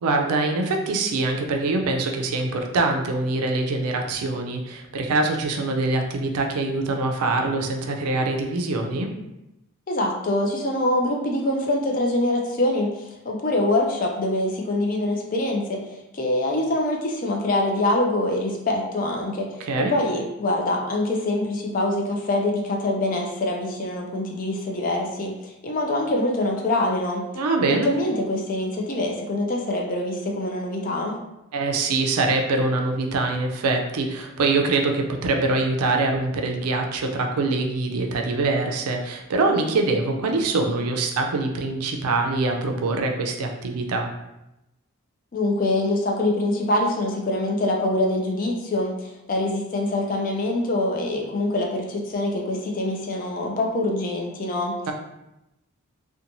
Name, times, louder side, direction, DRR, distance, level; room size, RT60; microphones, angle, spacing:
voice 1, 0.0-9.1 19.6-19.9 27.3-27.9 31.5-44.1 54.9-55.0, right 3 dB, 90° right, 3 dB, 0.4 m, -24 dB
voice 2, 9.9-15.8 16.1-27.2 27.7-31.2 45.3-54.7, left 1 dB, 35° left, 0 dB, 0.4 m, -24 dB
2.9 x 2.2 x 2.6 m, 0.92 s
head